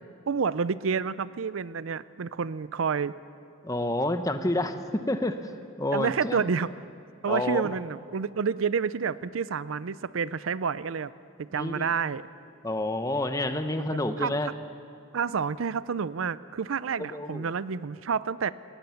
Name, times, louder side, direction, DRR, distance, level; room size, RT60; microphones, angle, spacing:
voice 1, 0.3-3.2 5.9-6.7 7.2-11.1 11.4-12.3 14.2-14.5 15.1-18.5, right 6 dB, 90° right, 17 dB, 0.5 m, -29 dB
voice 2, 3.6-5.4 5.8-6.4 7.3-7.6 11.6-11.9 12.6-14.5 17.0-17.4, left 1 dB, 15° left, 8 dB, 0.9 m, -28 dB
20.0 x 18.5 x 7.1 m, 2.4 s
head